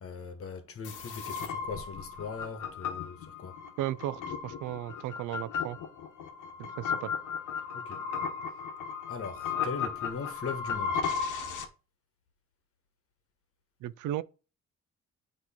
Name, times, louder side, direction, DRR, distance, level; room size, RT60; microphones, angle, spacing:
voice 1, 0.0-3.6 7.7-8.0 9.1-11.0, left 5 dB, 50° left, 1.3 m, -40 dB
sound 1, 0.8-11.7, left 6 dB, 85° left, 1.0 m, -35 dB
voice 2, 3.8-5.8 6.6-7.1 13.8-14.2, right 13 dB, 85° right, 0.5 m, -35 dB
8.1 x 3.1 x 4.3 m
cardioid pair, 90°, 30 cm